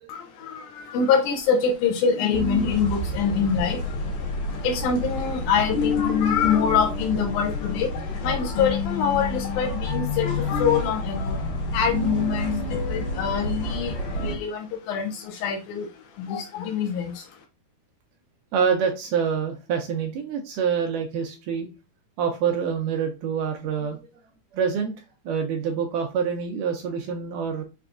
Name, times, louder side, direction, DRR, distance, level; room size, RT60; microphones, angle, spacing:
voice 1, 0.1-3.8 4.6-7.9 8.2-11.4 11.7-13.9 14.2-15.9 16.2-17.1, left 6 dB, 85° left, 1.7 m, -24 dB
sound 1, 2.3-14.4, left 2 dB, 70° left, 3.0 m, -29 dB
voice 2, 18.5-21.7 22.2-24.0 24.5-24.9 25.3-27.6, right 7 dB, 80° right, 1.9 m, -26 dB
6.0 x 3.4 x 2.5 m
omnidirectional pair, 4.2 m